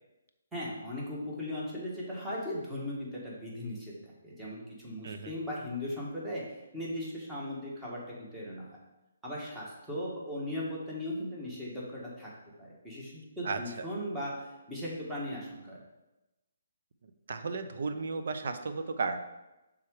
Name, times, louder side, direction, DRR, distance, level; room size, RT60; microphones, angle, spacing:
voice 1, 0.5-8.8 9.2-12.3 12.6-15.8, left 1 dB, 5° right, -6 dB, 1.6 m, -38 dB
voice 2, 13.4-13.9 17.3-19.2, right 4 dB, 60° right, 8 dB, 0.6 m, -34 dB
5.7 x 3.7 x 4.8 m, 0.99 s
hypercardioid pair, 150°, 0 cm